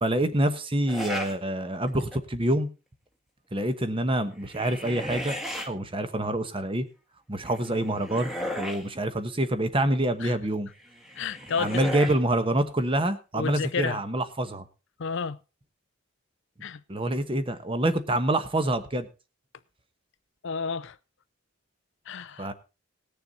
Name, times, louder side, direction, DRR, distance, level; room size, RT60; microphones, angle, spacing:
voice 1, 0.0-2.7 3.5-5.4 5.7-6.9 7.3-10.7 11.6-14.6 16.9-19.1 22.4-22.5, right 1 dB, 25° right, 1.1 m, -26 dB
sound 1, 0.9-1.4 1.9-2.3 4.3-5.7 7.4-8.9 10.8-12.2, equal, ahead, 1.4 m, -35 dB
voice 2, 11.2-12.0 13.3-14.0 15.0-15.4 16.6-16.8 20.4-21.0 22.1-22.5, left 5 dB, 55° left, 0.5 m, -31 dB
19.0 x 6.9 x 4.0 m
head